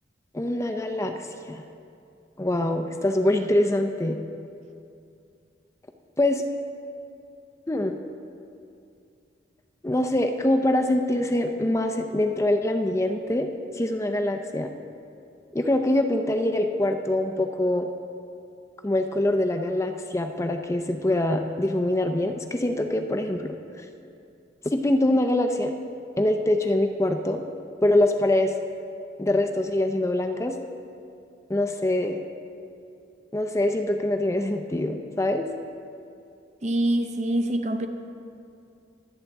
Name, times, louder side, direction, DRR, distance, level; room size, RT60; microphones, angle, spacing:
voice 1, 0.3-1.6 2.4-4.2 6.2-6.4 7.7-8.0 9.8-13.5 13.7-14.7 15.5-17.9 18.8-23.6 24.7-25.7 26.2-27.5 27.8-28.5 29.2-30.5 31.5-32.2 33.3-35.5, left 1 dB, 15° left, 0.5 m, -24 dB
voice 2, 36.6-37.9, right 1 dB, 35° right, 0.7 m, -25 dB
24.0 x 8.1 x 3.5 m
head